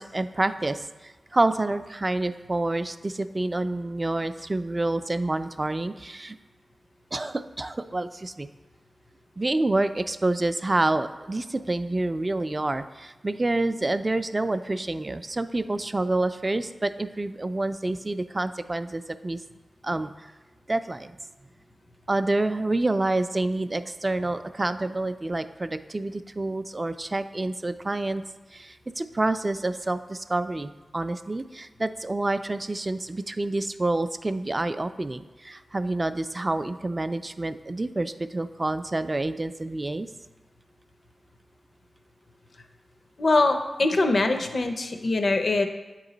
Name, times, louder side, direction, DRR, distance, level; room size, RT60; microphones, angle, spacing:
voice 1, 0.0-6.4 7.1-8.5 9.4-19.4 19.8-20.3 20.7-21.2 22.1-28.2 28.5-40.1, right 2 dB, 35° right, 11 dB, 0.3 m, -28 dB
voice 2, 43.2-45.7, left 2 dB, 65° left, 6 dB, 0.5 m, -23 dB
8.0 x 3.0 x 3.9 m, 1.1 s
cardioid pair, 45°, 0 cm